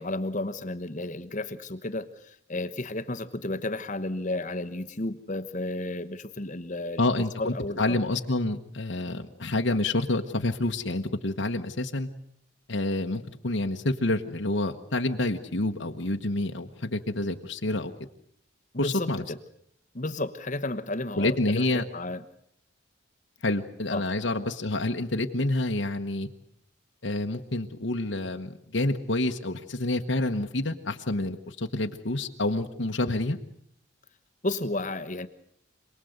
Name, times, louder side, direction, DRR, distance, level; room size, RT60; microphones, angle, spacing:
voice 1, 0.0-7.0 7.4-8.0 18.7-19.4 19.9-22.2 23.9-24.1 34.4-35.3, left 2 dB, 40° left, 9 dB, 1.1 m, -32 dB
voice 2, 7.0-12.1 12.7-17.9 18.8-19.2 21.2-21.8 23.4-26.3 27.0-33.4, left 2 dB, 65° left, 3 dB, 1.2 m, -28 dB
27.5 x 19.5 x 8.0 m, 0.69 s
head